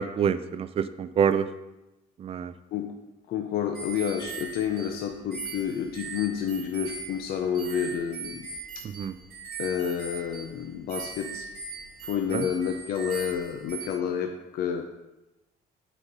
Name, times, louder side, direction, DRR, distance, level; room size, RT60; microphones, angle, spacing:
voice 1, 0.0-1.5 2.2-2.5 9.0-9.1 12.3-12.4, right 7 dB, 35° right, 12 dB, 0.4 m, -26 dB
voice 2, 3.3-8.5 9.6-11.5 12.0-14.8, left 8 dB, 65° left, 3 dB, 0.6 m, -29 dB
sound 1, 3.7-13.9, right 5 dB, 60° right, 1.1 m, -40 dB
8.1 x 4.1 x 3.7 m, 0.97 s
cardioid pair, 110°, 17 cm